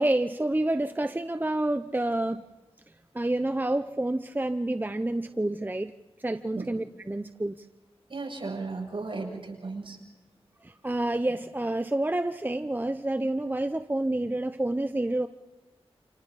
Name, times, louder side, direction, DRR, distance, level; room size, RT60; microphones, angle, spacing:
voice 1, 0.0-2.4 3.1-5.9 6.2-7.5 10.8-15.3, right 1 dB, 20° right, 9 dB, 0.7 m, -28 dB
voice 2, 8.1-10.0, right 3 dB, 55° right, 0 dB, 7.6 m, -35 dB
29.0 x 28.0 x 4.1 m, 1.1 s
wide cardioid pair, 70°, 10 cm